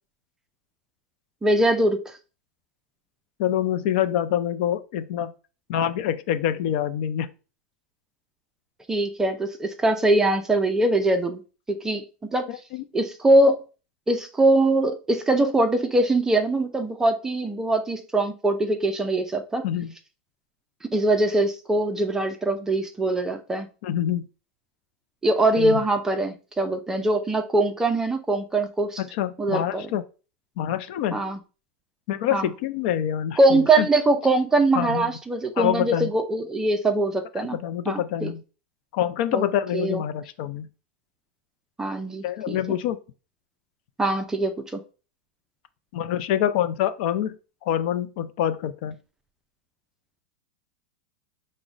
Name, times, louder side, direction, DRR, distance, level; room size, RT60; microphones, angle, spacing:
voice 1, 1.4-2.1 8.9-11.4 11.7-12.0 12.3-12.5 12.9-13.6 14.1-19.6 20.9-23.7 25.2-29.0 29.4-29.9 31.1-31.4 32.3-32.5 33.4-37.6 37.9-38.3 39.3-39.5 39.7-40.0 41.8-42.8 44.0-44.8, right 2 dB, 10° right, 0.4 m, -22 dB
voice 2, 3.4-5.3 5.7-7.3 12.5-12.8 19.6-19.9 23.8-24.3 25.6-25.8 29.0-30.0 30.6-31.2 32.1-33.9 34.8-35.1 35.6-36.1 37.5-38.4 38.9-40.7 42.2-43.0 45.9-47.4 47.6-48.9, left 10 dB, 55° left, 0.4 m, -26 dB
5.9 x 2.1 x 3.8 m
supercardioid pair, 155°, 6 cm